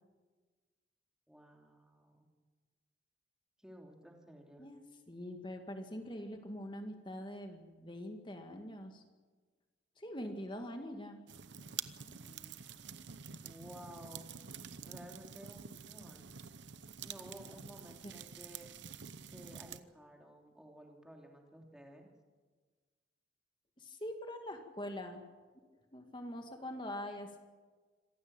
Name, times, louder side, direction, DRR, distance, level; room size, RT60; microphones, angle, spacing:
voice 1, 1.3-2.3 3.6-4.7 12.0-13.1 13.4-14.3 14.8-16.3 17.0-18.7 19.3-22.1, equal, 5° right, 1 dB, 3.2 m, -54 dB
voice 2, 4.6-9.0 10.0-11.2 23.8-25.2 25.9-27.4, left 1 dB, 25° left, 5 dB, 2.1 m, -44 dB
sound 1, 11.3-19.8, right 7 dB, 80° right, 1.0 m, -48 dB
26.0 x 16.0 x 9.0 m, 1.4 s
head